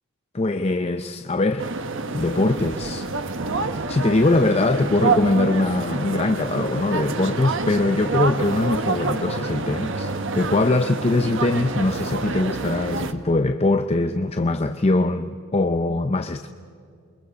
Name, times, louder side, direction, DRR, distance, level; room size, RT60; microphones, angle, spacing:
voice 1, 0.3-1.7 2.1-3.1 3.9-16.5, left 2 dB, 30° left, 0.6 m, -22 dB
sound 1, 1.6-13.1, right 3 dB, 60° right, 1.1 m, -27 dB
28.5 x 23.0 x 5.2 m
head